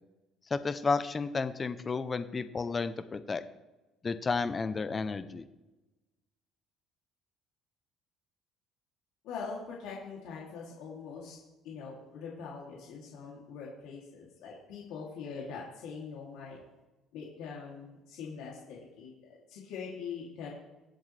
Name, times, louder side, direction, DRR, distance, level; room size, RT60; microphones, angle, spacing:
voice 1, 0.5-3.4 4.0-5.5, left 4 dB, 20° left, 12 dB, 0.6 m, -32 dB
voice 2, 9.2-11.4 11.6-16.6 17.1-20.5, left 5 dB, 80° left, -4 dB, 2.8 m, -43 dB
23.5 x 7.8 x 3.3 m, 1.1 s
cardioid pair, 150°, 0 cm